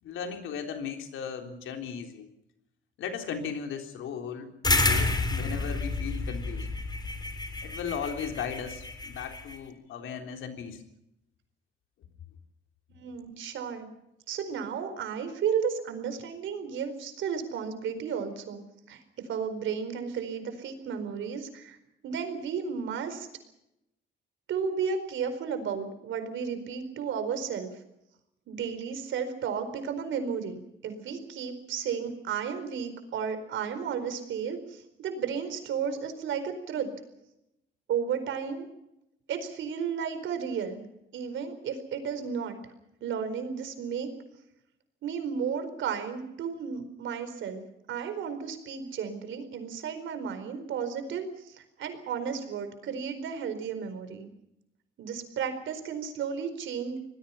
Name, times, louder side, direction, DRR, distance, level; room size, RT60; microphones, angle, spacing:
voice 1, 0.0-2.3 3.0-4.5 4.8-6.7 7.6-10.8, left 7 dB, 80° left, 4 dB, 3.7 m, -36 dB
sound 1, 4.6-9.6, left 2 dB, 20° left, 3.6 m, -29 dB
voice 2, 13.0-13.9 14.3-18.6 18.9-21.8 22.0-23.3 24.5-27.7 28.5-36.9 37.9-38.7 39.3-40.8 41.1-42.6 43.0-44.1 45.0-47.6 47.9-54.3 55.0-57.1, right 7 dB, 75° right, 9 dB, 4.5 m, -33 dB
27.0 x 20.0 x 5.7 m, 0.84 s
cardioid pair, 90°, 20 cm